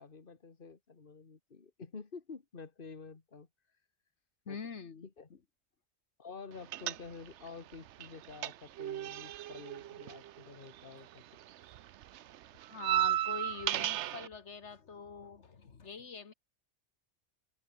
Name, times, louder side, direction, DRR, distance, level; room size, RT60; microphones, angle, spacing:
voice 1, 0.0-3.5 4.5-4.6 5.0-5.3 6.2-11.4, left 4 dB, 50° left, 2.0 m, -49 dB
voice 2, 4.5-5.1 10.4-10.5 12.7-16.3, left 5 dB, 80° left, 1.9 m, -45 dB
sound 1, 6.7-7.5 7.7-11.1 11.4-14.3, right 12 dB, 80° right, 0.9 m, -35 dB
omnidirectional pair, 1.2 m